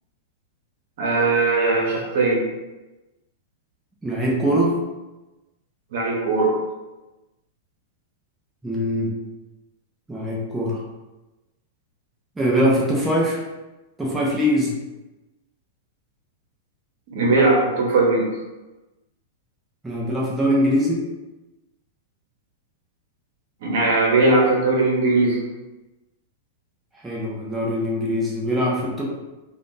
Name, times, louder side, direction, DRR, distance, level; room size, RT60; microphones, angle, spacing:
voice 1, 1.0-2.4 5.9-6.5 17.1-18.3 23.6-25.4, right 3 dB, 65° right, -3 dB, 1.0 m, -19 dB
voice 2, 4.0-4.8 8.6-9.1 10.1-10.8 12.4-13.4 14.0-14.7 19.8-21.1 26.9-29.0, equal, 10° right, -5 dB, 0.7 m, -22 dB
3.5 x 2.5 x 2.6 m, 1.1 s
hypercardioid pair, 110°, 0 cm